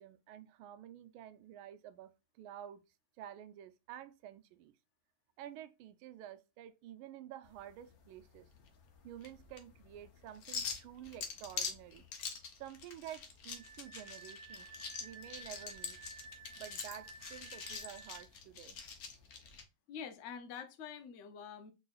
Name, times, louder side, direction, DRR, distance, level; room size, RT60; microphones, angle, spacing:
voice 1, 0.0-2.8 3.2-4.7 5.4-8.5 9.0-12.0 12.6-14.7 15.0-16.0 16.6-18.8, right 11 dB, 85° right, 1.4 m, -50 dB
sound 1, 7.4-19.6, left 5 dB, 60° left, 1.1 m, -45 dB
Wind instrument woodwind instrument, 13.5-18.3, right 3 dB, 40° left, 1.3 m, -53 dB
voice 2, 19.9-21.7, left 7 dB, 80° left, 0.6 m, -46 dB
4.7 x 4.0 x 2.3 m
omnidirectional pair, 2.2 m